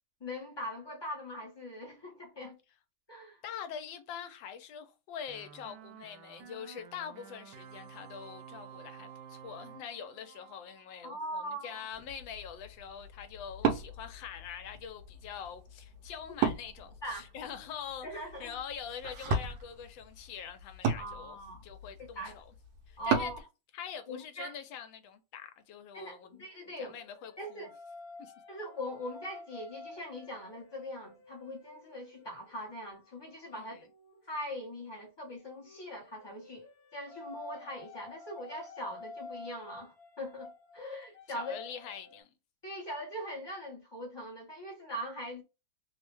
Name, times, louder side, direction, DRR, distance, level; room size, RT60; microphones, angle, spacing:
voice 1, 0.2-2.6 3.1-3.4 11.0-11.8 17.0-17.3 18.0-18.5 21.0-21.7 22.0-22.3 23.0-23.4 24.1-24.5 25.9-27.0 27.4-27.7 28.5-33.9 34.3-36.7 36.9-41.5 42.6-45.4, equal, 30° left, 0.4 m, -41 dB
voice 2, 3.4-18.1 18.4-22.4 22.9-23.3 23.7-26.5 26.8-27.7 28.2-28.3 33.5-33.8 41.3-42.3, left 8 dB, 75° left, 1.3 m, -44 dB
sound 1, 5.3-11.4, right 8 dB, 70° right, 1.1 m, -52 dB
Wood, 11.9-23.4, right 5 dB, 90° right, 1.4 m, -37 dB
sound 2, 26.0-34.3 35.4-42.2, left 3 dB, 60° left, 1.0 m, -51 dB
3.4 x 2.1 x 3.0 m
omnidirectional pair, 2.1 m